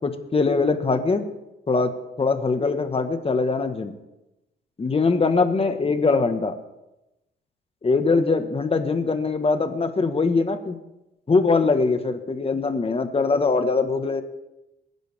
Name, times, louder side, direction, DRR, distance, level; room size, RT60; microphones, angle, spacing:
voice 1, 0.0-1.3 1.7-1.9 2.2-3.9 4.8-6.6 7.8-10.8 11.3-14.2, left 4 dB, 30° left, 7 dB, 1.7 m, -22 dB
23.5 x 10.0 x 3.7 m, 0.94 s
cardioid pair, 90°, 20 cm